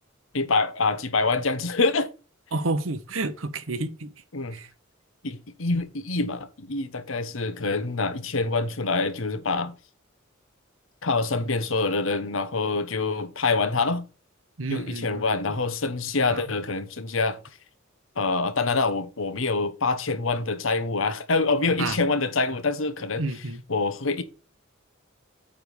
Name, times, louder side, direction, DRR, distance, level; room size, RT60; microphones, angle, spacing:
voice 1, 0.3-2.1 4.3-4.6 5.2-9.7 11.0-14.0 14.7-17.4 18.2-23.2 23.7-24.2, left 3 dB, 75° left, 1.1 m, -26 dB
voice 2, 2.5-4.1 4.5-4.7 14.6-15.3 16.3-16.5 21.8-22.0 23.2-23.6, right 2 dB, 75° right, 1.0 m, -30 dB
8.9 x 3.6 x 6.3 m
head